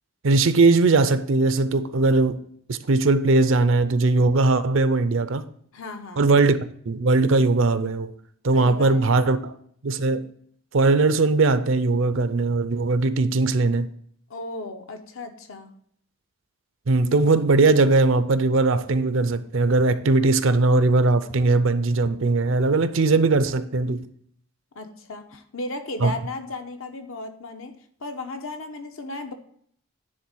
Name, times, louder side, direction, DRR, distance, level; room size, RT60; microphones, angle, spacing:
voice 1, 0.2-2.4 2.7-5.4 6.2-8.1 8.4-9.5 9.8-10.3 10.7-13.9 16.9-24.1 26.0-26.1, right 3 dB, 60° right, 0.5 m, -20 dB
voice 2, 5.7-6.3 8.5-9.2 14.3-15.7 24.7-27.7 28.0-29.3, left 2 dB, 65° left, 1.0 m, -35 dB
10.0 x 3.7 x 6.2 m
head